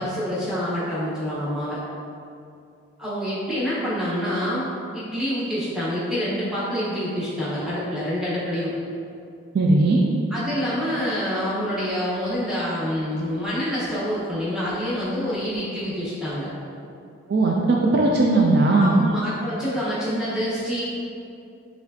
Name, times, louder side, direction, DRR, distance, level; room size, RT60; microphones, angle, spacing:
voice 1, 0.0-1.8 3.0-8.7 10.3-16.5 18.7-20.8, equal, 5° right, -10 dB, 1.0 m, -27 dB
voice 2, 9.5-10.0 17.3-19.0, right 2 dB, 50° right, -1 dB, 0.3 m, -18 dB
4.9 x 3.3 x 2.7 m, 2.5 s
head